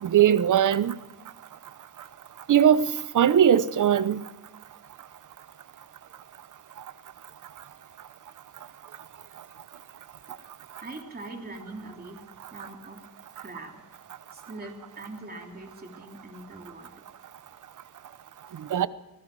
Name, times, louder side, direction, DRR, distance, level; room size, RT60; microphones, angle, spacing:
voice 1, 0.0-0.9 2.5-2.9 3.1-4.2 18.7-18.9, right 9 dB, 60° right, 0.9 m, -19 dB
voice 2, 10.8-12.2 12.5-13.0 13.3-13.8 14.3-16.9 18.5-18.8, right 2 dB, 25° right, 3.2 m, -42 dB
25.5 x 16.5 x 6.2 m
wide cardioid pair, 145°, 35 cm